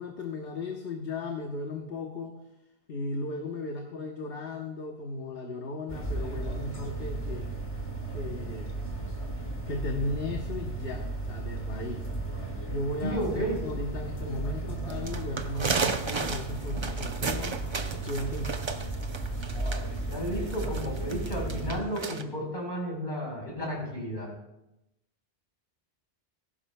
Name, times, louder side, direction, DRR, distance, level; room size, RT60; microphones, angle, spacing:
voice 1, 0.0-2.3 2.9-7.5 8.1-8.8 9.7-12.0 12.4-17.6 18.0-18.4, left 2 dB, 70° left, 2 dB, 1.3 m, -36 dB
sound 1, 5.9-21.8, right 2 dB, 30° left, 1.8 m, -35 dB
voice 2, 13.0-13.6 20.1-24.3, equal, 50° left, -2 dB, 4.6 m, -33 dB
sound 2, 14.9-22.2, right 4 dB, 35° right, 0.6 m, -33 dB
17.5 x 15.5 x 2.2 m, 0.89 s
omnidirectional pair, 1.1 m